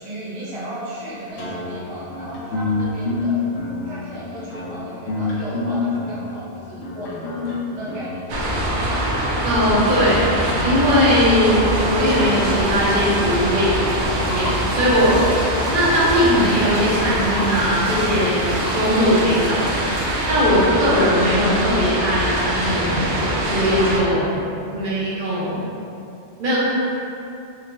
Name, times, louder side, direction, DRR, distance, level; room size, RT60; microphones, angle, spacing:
voice 1, 0.0-3.5 3.8-8.6 13.5-14.0 19.5-20.0 24.7-25.0, right 1 dB, 35° right, -9 dB, 0.6 m, -35 dB
sound 1, 1.4-8.8, left 3 dB, 70° left, 1.0 m, -27 dB
sound 2, 8.3-24.0, right 1 dB, 80° right, 0.9 m, -23 dB
voice 2, 9.4-10.4 10.6-13.7 14.3-15.2 15.7-19.6 20.3-24.3 24.7-25.6 26.4-26.6, equal, 50° right, -8 dB, 1.0 m, -19 dB
Liquid, 13.5-20.7, left 1 dB, 45° left, 0.6 m, -34 dB
4.3 x 2.8 x 2.6 m, 2.6 s
omnidirectional pair, 1.2 m